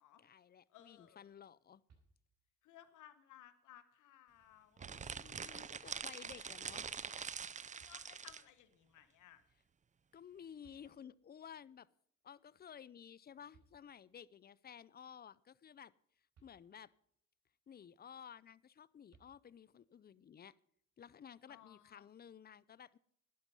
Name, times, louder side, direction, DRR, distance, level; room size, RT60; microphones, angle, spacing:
voice 1, 0.2-1.8 4.8-6.8 10.1-11.9 12.2-15.9 16.4-16.9 17.7-20.5 21.0-23.0, left 8 dB, 30° left, 21 dB, 0.5 m, -55 dB
voice 2, 0.7-1.3 2.6-5.0 5.4-5.6 6.4-6.6 7.6-9.4 21.5-22.0, left 12 dB, 80° left, 12 dB, 1.1 m, -61 dB
sound 1, 1.9-2.6 4.1-4.2 4.8-5.6 7.8-8.5 10.3-10.4 10.6-11.5 13.2-13.3 13.5-14.3 16.3-17.1 19.1-19.9, right 5 dB, 60° right, 4.4 m, -71 dB
sound 2, 4.8-8.5, right 6 dB, 25° right, 0.5 m, -45 dB
11.0 x 11.0 x 5.4 m, 0.68 s
cardioid pair, 90°, 30 cm